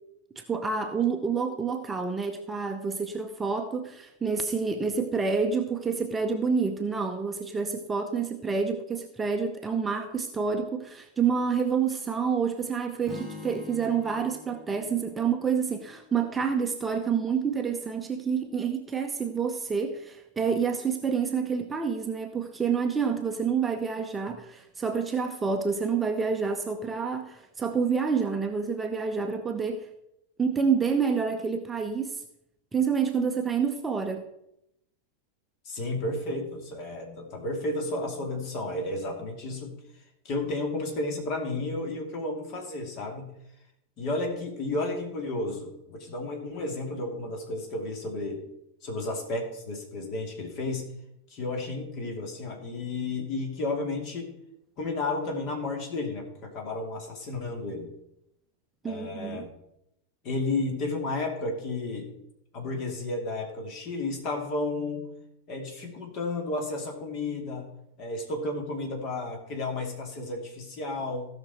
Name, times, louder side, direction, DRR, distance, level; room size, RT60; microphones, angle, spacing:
voice 1, 0.4-29.9 30.4-32.2 32.7-34.3 58.8-59.4, right 6 dB, 15° right, 6 dB, 0.8 m, -28 dB
Strum, 13.0-17.2, left 4 dB, 15° left, 2.1 m, -46 dB
voice 2, 35.6-39.8 40.2-43.3 44.0-48.4 48.8-50.9 51.3-54.3 54.8-57.9 58.8-59.5 60.2-62.1 62.5-65.1 65.5-67.7 68.0-71.3, left 2 dB, 40° left, 2 dB, 2.6 m, -32 dB
15.5 x 6.1 x 4.2 m, 0.81 s
figure-of-eight pair, 90°, 0 cm